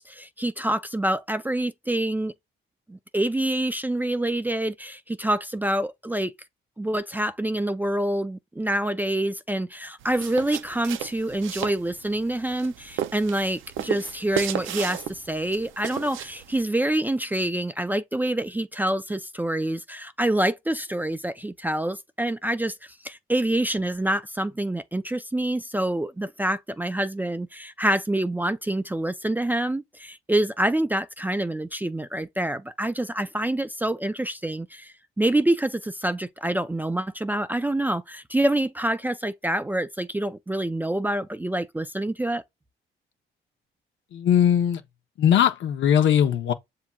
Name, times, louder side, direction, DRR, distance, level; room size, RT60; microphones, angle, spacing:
voice 1, 0.0-2.3 2.9-6.3 6.8-42.4, right 1 dB, 10° right, 0.4 m, -26 dB
sound 1, 10.0-16.6, right 11 dB, 80° right, 0.5 m, -34 dB
voice 2, 44.1-44.8 45.2-46.5, left 9 dB, 70° left, 0.8 m, -20 dB
7.2 x 2.7 x 2.3 m
cardioid pair, 90°, 20 cm